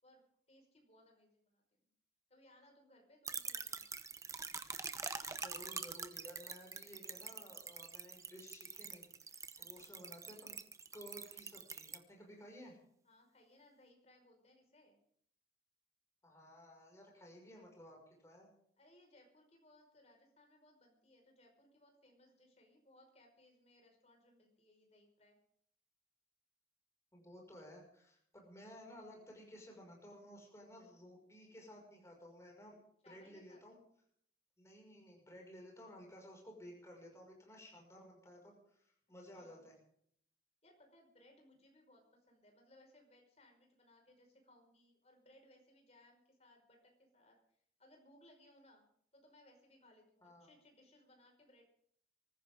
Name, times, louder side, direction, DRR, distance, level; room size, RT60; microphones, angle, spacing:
voice 1, 0.0-1.9 2.3-4.0 9.5-9.9 13.0-15.0 17.4-17.9 18.8-25.4 33.0-33.6 39.3-39.7 40.6-48.8 49.1-51.6, left 1 dB, 35° left, 2 dB, 5.4 m, -66 dB
sound 1, 3.2-12.0, right 5 dB, 15° right, 0.8 m, -45 dB
voice 2, 5.4-10.6 10.9-12.8 16.2-18.0 18.2-18.5 27.1-32.8 33.1-33.8 34.6-39.7 50.2-50.5, equal, 15° left, 0 dB, 5.9 m, -55 dB
24.5 x 15.0 x 3.8 m, 0.65 s
head